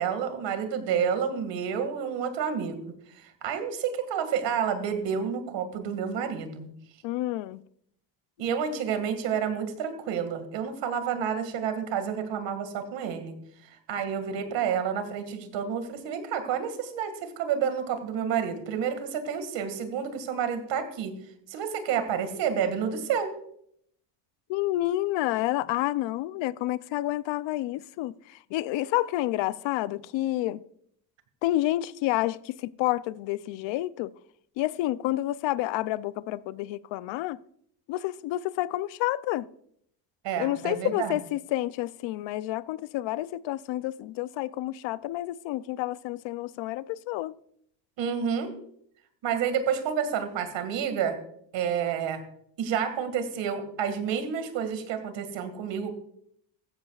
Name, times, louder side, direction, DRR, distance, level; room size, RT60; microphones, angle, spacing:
voice 1, 0.0-2.8 3.2-6.7 8.4-13.3 13.9-21.1 21.5-23.3 40.2-41.2 48.0-48.5 49.2-51.2 51.5-52.2 52.6-55.9, right 7 dB, 75° right, 2.1 m, -29 dB
voice 2, 7.0-7.6 24.5-28.1 28.5-30.6 31.4-34.1 34.6-37.4 37.9-39.5 40.4-47.3, left 16 dB, 85° left, 0.6 m, -29 dB
15.0 x 13.5 x 2.4 m
cardioid pair, 140°, 44 cm